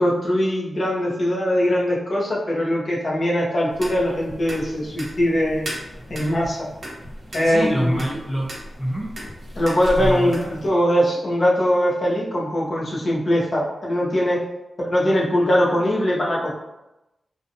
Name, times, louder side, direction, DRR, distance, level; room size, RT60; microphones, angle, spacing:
voice 1, 0.0-5.7 6.1-6.7 7.3-8.0 9.6-14.4 14.8-16.6, equal, 35° left, -3 dB, 0.6 m, -21 dB
sound 1, 3.7-10.7, equal, 45° right, 0.7 m, -35 dB
voice 2, 7.4-9.1 10.0-10.3, equal, 20° left, -8 dB, 1.0 m, -26 dB
2.6 x 2.1 x 2.6 m, 0.92 s
wide cardioid pair, 175°, 0 cm